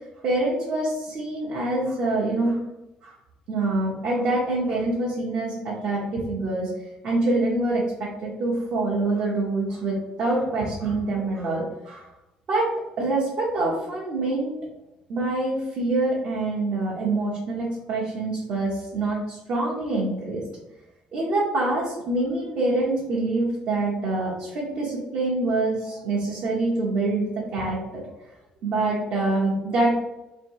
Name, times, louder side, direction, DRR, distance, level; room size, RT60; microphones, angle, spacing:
voice 1, 0.2-2.6 3.0-3.1 3.5-6.7 7.0-7.8 8.2-12.1 12.5-12.7 13.0-14.5 15.1-20.4 21.1-28.0 28.6-30.0, right 2 dB, 50° right, -5 dB, 1.1 m, -25 dB
3.4 x 3.2 x 4.7 m, 0.95 s
cardioid pair, 160°, 3 cm